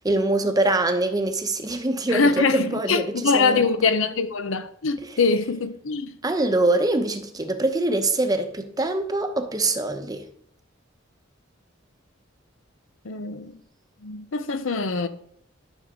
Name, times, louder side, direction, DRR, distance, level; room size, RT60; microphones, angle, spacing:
voice 1, 0.0-3.7 5.0-5.1 6.2-10.3, right 2 dB, 20° right, 0.8 m, -24 dB
voice 2, 2.1-6.1 13.0-13.5 14.0-15.1, left 4 dB, 90° left, 0.7 m, -23 dB
12.5 x 6.3 x 3.7 m
head